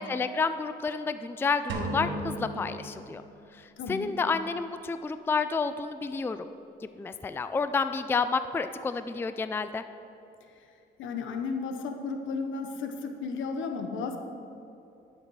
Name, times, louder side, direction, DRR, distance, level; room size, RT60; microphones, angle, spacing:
voice 1, 0.0-3.2 3.5-6.5 6.9-9.8, left 4 dB, 10° left, 11 dB, 0.3 m, -30 dB
sound 1, 1.7-3.7, right 1 dB, 65° right, 1.3 m, -36 dB
voice 2, 3.8-4.2 11.0-14.2, left 4 dB, 80° left, 5 dB, 1.0 m, -33 dB
11.0 x 6.6 x 4.7 m, 2.8 s
cardioid pair, 90°, 20 cm